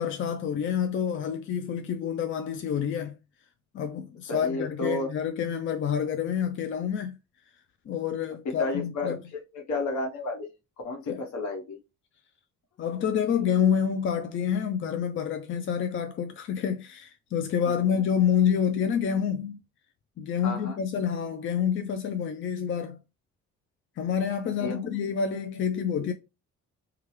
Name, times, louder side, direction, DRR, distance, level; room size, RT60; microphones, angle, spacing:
voice 1, 0.0-3.1 3.7-7.1 7.9-9.2 11.1-11.2 12.8-19.6 20.2-23.0 24.0-26.1, left 8 dB, 45° left, 0.4 m, -28 dB
voice 2, 4.3-5.1 8.4-10.5 10.8-11.8 17.7-18.0 20.4-20.8 24.4-25.0, left 2 dB, 70° left, 1.1 m, -32 dB
3.1 x 2.3 x 3.0 m
cardioid pair, 90°, 30 cm